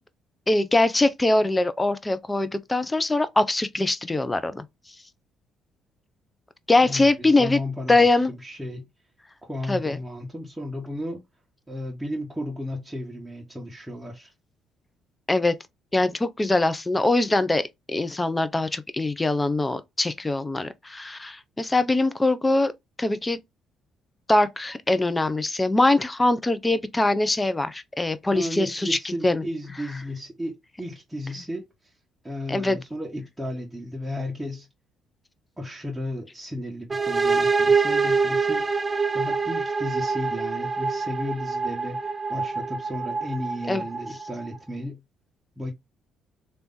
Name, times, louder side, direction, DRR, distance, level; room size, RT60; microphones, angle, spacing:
voice 1, 0.5-4.6 6.7-7.6 7.9-8.3 9.7-10.0 15.3-15.6 15.9-22.7 23.0-23.4 24.3-29.4 32.5-32.8 43.7-43.8, left 2 dB, 20° left, 0.7 m, -22 dB
voice 2, 6.8-8.9 9.4-11.2 11.7-14.3 28.3-31.9 32.2-34.7 35.6-38.8 39.1-45.0 45.6-45.7, left 1 dB, 10° right, 1.4 m, -34 dB
sound 1, 36.9-44.6, right 4 dB, 30° right, 0.4 m, -25 dB
3.4 x 3.0 x 4.0 m
hypercardioid pair, 60°, 0 cm